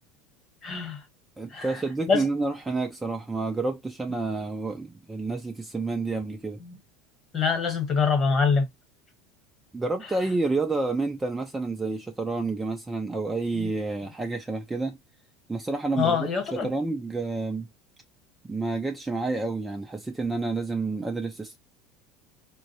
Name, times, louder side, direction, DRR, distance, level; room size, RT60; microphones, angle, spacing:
voice 1, 0.6-1.0 1.5-1.8 2.1-2.2 6.7-6.8 7.3-8.7 13.6-13.7 16.0-16.7, left 5 dB, 30° left, 1.1 m, -24 dB
voice 2, 1.4-6.6 9.7-15.0 15.5-17.7 18.4-21.6, right 3 dB, 10° right, 0.4 m, -29 dB
3.6 x 2.1 x 2.7 m
supercardioid pair, 145°, 0 cm